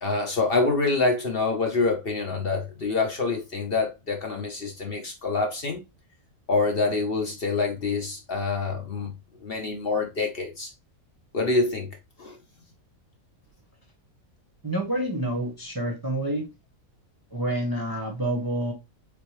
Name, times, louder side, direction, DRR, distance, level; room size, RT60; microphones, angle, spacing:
voice 1, 0.0-5.8 6.5-9.1 9.4-10.7 11.3-11.9 12.2-12.4, left 3 dB, 45° left, 1.0 m, -26 dB
voice 2, 14.6-16.5 17.3-18.7, right 1 dB, 20° right, 0.7 m, -28 dB
4.2 x 3.5 x 3.1 m
omnidirectional pair, 1.5 m